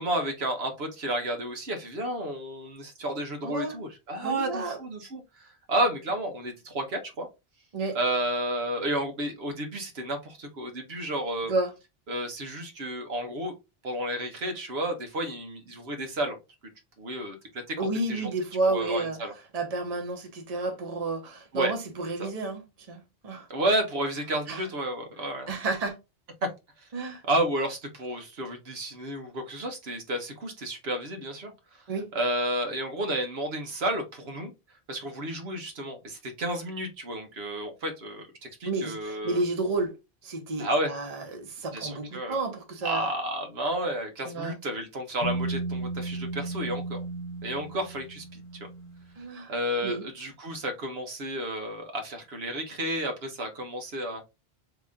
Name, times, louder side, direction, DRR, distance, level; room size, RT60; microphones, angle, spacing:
voice 1, 0.0-7.3 7.9-11.5 12.1-13.5 13.8-16.4 17.0-18.3 18.7-19.3 21.5-21.7 22.2-22.3 23.5-25.5 26.4-26.5 27.2-31.5 32.1-34.5 34.9-39.4 40.6-40.9 41.7-42.4 42.8-47.0 47.4-48.4 49.5-54.2, right 1 dB, 80° right, 1.2 m, -31 dB
voice 2, 3.4-3.8 4.2-4.8 7.7-8.0 11.5-11.7 17.8-19.2 19.5-23.5 24.5-24.6 25.5-25.9 26.9-27.2 31.9-32.1 38.6-39.9 40.2-43.1 44.3-44.6 49.2-49.5 49.8-50.0, right 2 dB, 40° right, 1.0 m, -31 dB
sound 1, 45.2-49.0, right 2 dB, 60° left, 0.9 m, -34 dB
3.8 x 3.0 x 3.5 m
omnidirectional pair, 1.0 m